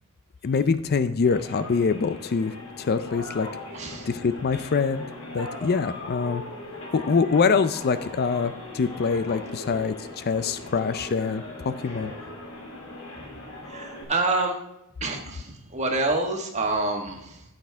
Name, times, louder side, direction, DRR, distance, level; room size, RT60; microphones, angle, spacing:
voice 1, 0.4-3.5 4.1-5.0 5.3-6.4 6.9-12.1, left 5 dB, 45° left, 12 dB, 0.4 m, -24 dB
sound 1, 1.2-14.0, left 2 dB, 75° left, 2.9 m, -39 dB
voice 2, 3.7-4.1 13.7-14.6 15.0-17.4, right 2 dB, 35° right, 2 dB, 1.6 m, -27 dB
14.0 x 6.6 x 3.5 m, 0.82 s
head